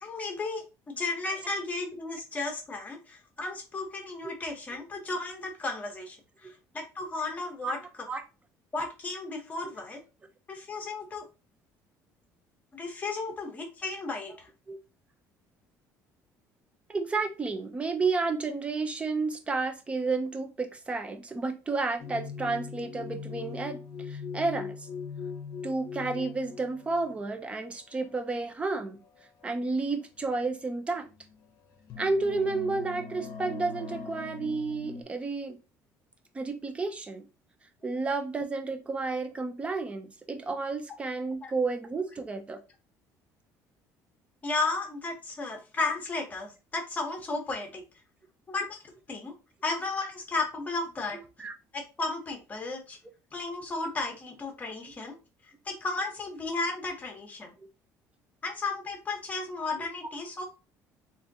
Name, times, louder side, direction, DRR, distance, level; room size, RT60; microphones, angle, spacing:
voice 1, 0.0-7.8 8.7-10.0 10.5-11.3 12.7-14.5 41.4-41.5 44.4-47.8 48.5-48.8 49.1-49.3 49.6-51.2 51.7-53.0 53.3-55.2 55.6-57.5 58.4-60.4, left 3 dB, 25° left, 3 dB, 1.0 m, -34 dB
voice 2, 16.9-24.9 25.6-29.0 29.4-31.1 32.0-35.6 36.3-37.2 37.8-42.6 51.1-51.5, right 3 dB, 20° right, 7 dB, 0.5 m, -31 dB
sound 1, 22.0-27.2 28.0-28.3 29.4-29.5 30.2-30.3 31.0-31.5 31.7-35.0, left 5 dB, 50° left, 0.8 m, -41 dB
3.5 x 2.6 x 2.7 m, 0.30 s
cardioid pair, 135°, 7 cm